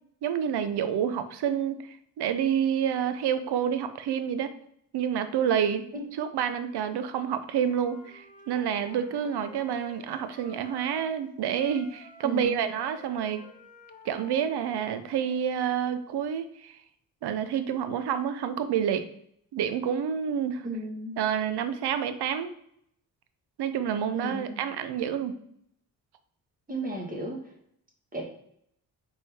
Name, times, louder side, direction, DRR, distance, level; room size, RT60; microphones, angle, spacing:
voice 1, 0.2-4.5 4.9-5.9 6.2-13.5 14.0-16.8 17.2-19.0 19.5-20.7 21.2-22.5 23.6-25.3, right 8 dB, 70° right, 10 dB, 0.6 m, -28 dB
Wind instrument woodwind instrument, 7.5-11.2 11.5-15.4, left 2 dB, 20° left, 0.9 m, -51 dB
voice 2, 12.2-12.6 20.6-21.2 24.1-24.6 26.7-27.4 28.1-28.2, equal, 20° right, 0 dB, 1.5 m, -34 dB
4.1 x 3.5 x 3.5 m, 0.70 s
cardioid pair, 70°, 40 cm